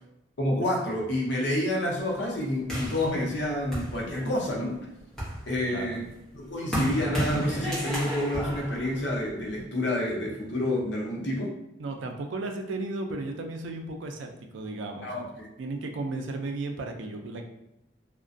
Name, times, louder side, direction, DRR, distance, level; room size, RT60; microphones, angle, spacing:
voice 1, 0.4-4.8 5.5-6.0 6.3-11.6 15.0-15.5, left 1 dB, 65° left, -2 dB, 0.6 m, -29 dB
sound 1, 2.7-4.5 5.0-9.6, equal, 5° left, 0.8 m, -33 dB
voice 2, 5.7-6.0 11.8-15.2 15.6-17.5, right 2 dB, 75° right, 4 dB, 0.4 m, -34 dB
2.4 x 2.1 x 2.5 m, 0.86 s
head